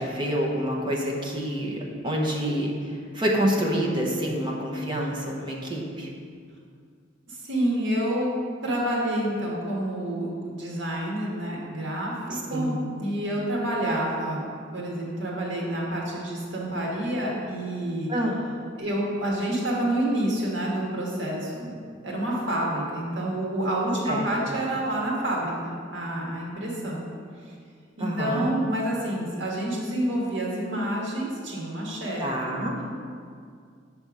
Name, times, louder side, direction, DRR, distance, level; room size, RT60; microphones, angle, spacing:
voice 1, 0.0-6.1 12.3-12.7 18.1-18.4 24.1-24.3 28.0-28.5 32.2-32.7, equal, 25° right, -2 dB, 1.0 m, -27 dB
voice 2, 7.3-8.3 8.6-14.4 14.7-18.1 18.7-21.7 22.0-27.0 27.4-27.5 28.0-32.6, right 1 dB, 75° right, -3 dB, 1.6 m, -28 dB
6.8 x 3.5 x 6.2 m, 2.2 s
head